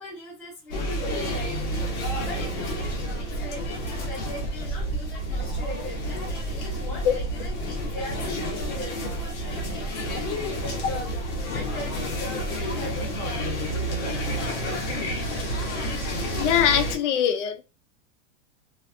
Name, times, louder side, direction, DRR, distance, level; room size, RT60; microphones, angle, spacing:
voice 1, 0.0-11.2 11.5-15.3, left 1 dB, 5° left, 0.6 m, -40 dB
sound 1, 0.7-16.9, equal, 35° left, 0.7 m, -30 dB
voice 2, 16.4-17.6, left 9 dB, 65° left, 0.5 m, -22 dB
2.5 x 2.2 x 2.4 m
supercardioid pair, 175°, 38 cm